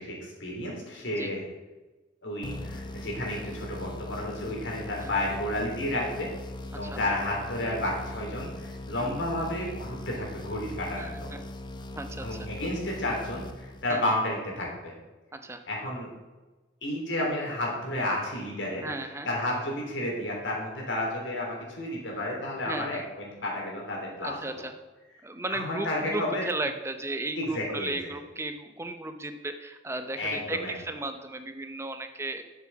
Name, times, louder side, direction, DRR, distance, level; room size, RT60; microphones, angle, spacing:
voice 1, 0.0-1.4 2.2-6.3 6.7-11.3 12.2-14.9 15.7-16.1 16.8-18.8 19.2-24.3 25.5-26.5 27.3-27.9 30.2-30.7, left 1 dB, 75° left, -1 dB, 3.4 m, -31 dB
sound 1, 2.4-14.1, left 1 dB, 25° left, 0.7 m, -40 dB
voice 2, 11.0-11.4 12.0-12.5 13.9-14.0 15.3-15.6 18.8-19.3 22.7-23.1 24.2-24.7 25.2-32.4, right 2 dB, 15° right, 7 dB, 0.7 m, -35 dB
7.6 x 7.5 x 7.2 m, 1.2 s
head